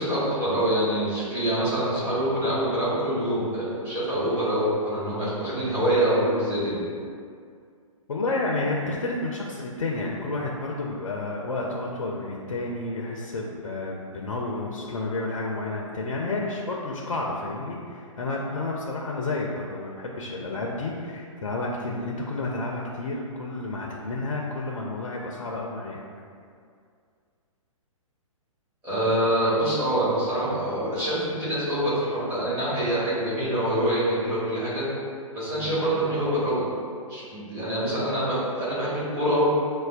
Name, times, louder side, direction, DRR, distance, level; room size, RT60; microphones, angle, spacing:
voice 1, 0.0-6.7 28.8-34.8 35.3-36.6 37.1-39.5, right 1 dB, 10° right, -12 dB, 1.2 m, -25 dB
voice 2, 8.1-26.0 29.0-29.2 35.6-35.8, left 2 dB, 70° left, -2 dB, 0.4 m, -31 dB
5.2 x 2.1 x 2.4 m, 2.2 s
figure-of-eight pair, 120°, 18 cm